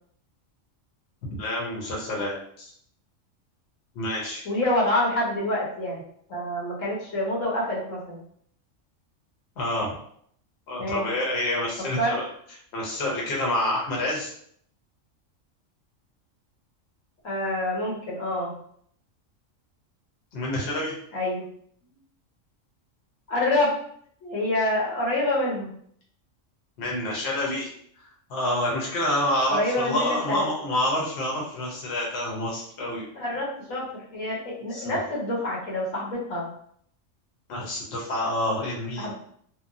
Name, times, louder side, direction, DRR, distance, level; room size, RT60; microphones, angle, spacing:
voice 1, 1.4-2.7 3.9-4.4 9.6-10.0 10.7-12.2 12.7-14.3 20.3-20.9 26.8-27.7 28.3-33.0 34.7-35.0 37.5-39.1, left 1 dB, 60° left, -3 dB, 1.0 m, -28 dB
voice 2, 4.4-6.0 6.3-8.2 10.8-11.0 11.9-12.1 17.2-18.5 21.1-21.4 23.3-23.7 24.2-25.7 29.5-30.5 32.9-33.9 34.1-36.5 39.0-39.1, left 1 dB, 80° left, -3 dB, 1.2 m, -27 dB
2.8 x 2.1 x 2.5 m, 0.65 s
omnidirectional pair, 1.3 m